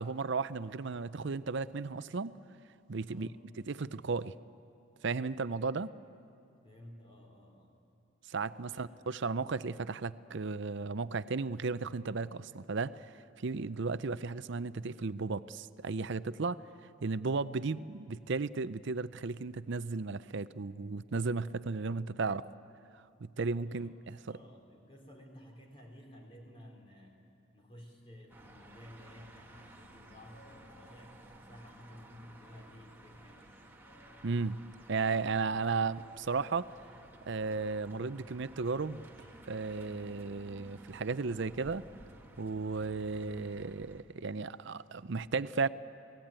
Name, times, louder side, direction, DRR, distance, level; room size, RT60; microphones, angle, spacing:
voice 1, 0.0-2.3 2.9-3.3 3.7-4.3 5.0-5.9 8.3-16.6 17.0-22.5 23.2-24.2 34.2-34.6 34.9-36.7 37.3-39.0 39.5-41.9 42.4-45.7, right 4 dB, 55° right, 0.6 m, -34 dB
voice 2, 3.1-3.4 6.6-7.8 8.6-9.0 23.6-23.9 24.3-27.2 27.5-33.6, left 1 dB, 25° left, 3.6 m, -54 dB
sound 1, 28.3-44.0, right 1 dB, 10° right, 1.4 m, -55 dB
Singing, 29.3-31.0 32.4-34.9 35.4-37.1 38.0-38.2 39.2-39.8, left 2 dB, 75° left, 5.5 m, -65 dB
29.0 x 18.5 x 8.9 m
head